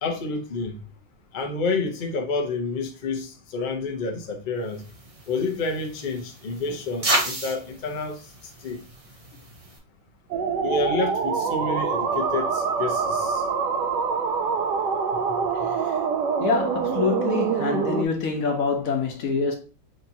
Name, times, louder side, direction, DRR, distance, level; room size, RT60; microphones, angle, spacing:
voice 1, 0.0-0.8 1.3-4.8 5.3-8.3 8.6-8.8 10.6-13.5, left 3 dB, 75° left, 0.4 m, -29 dB
sound 1, 4.7-9.8, right 1 dB, 40° right, 0.4 m, -32 dB
sound 2, 10.3-18.1, right 5 dB, 70° right, 1.1 m, -25 dB
voice 2, 16.4-19.6, left 5 dB, 55° left, 1.1 m, -25 dB
6.5 x 2.9 x 2.7 m
omnidirectional pair, 2.1 m